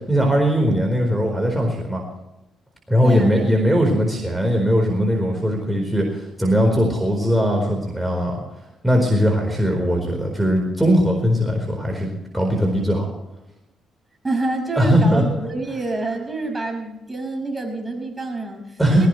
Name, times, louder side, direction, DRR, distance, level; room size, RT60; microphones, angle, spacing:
voice 1, 0.1-2.0 2.9-8.4 8.8-13.1 14.8-15.2 18.8-19.1, equal, 5° right, 0 dB, 4.4 m, -19 dB
voice 2, 3.0-3.5 14.2-19.1, right 2 dB, 20° right, 3 dB, 5.5 m, -27 dB
20.0 x 19.0 x 3.2 m, 0.95 s
cardioid pair, 90°, 0 cm